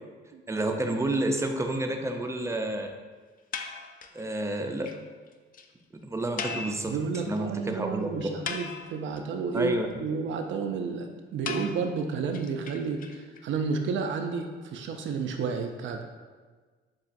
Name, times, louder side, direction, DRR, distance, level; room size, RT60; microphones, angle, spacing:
voice 1, 0.5-2.9 4.1-4.9 5.9-8.2 9.5-9.9, right 2 dB, 15° right, 4 dB, 0.4 m, -30 dB
sound 1, 3.5-4.2 4.6-4.7 4.9-5.0 5.3-5.4 5.5-5.7 6.4-7.4 7.7-7.8 8.2-9.2 11.5-13.4, left 5 dB, 45° left, 0.4 m, -37 dB
voice 2, 6.9-16.0, right 5 dB, 70° right, 5 dB, 0.5 m, -31 dB
7.3 x 2.4 x 2.5 m, 1.4 s
cardioid pair, 90°, 20 cm